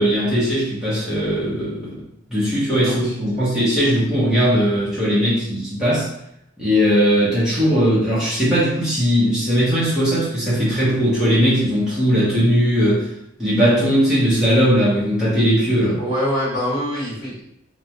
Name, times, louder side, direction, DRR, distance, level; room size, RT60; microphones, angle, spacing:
voice 1, 0.0-2.0 2.3-6.1 6.6-13.1 13.4-16.0, equal, 5° right, -10 dB, 0.8 m, -18 dB
voice 2, 2.9-3.5 16.0-17.4, equal, 50° left, -9 dB, 1.3 m, -25 dB
2.4 x 2.1 x 2.8 m, 0.77 s
head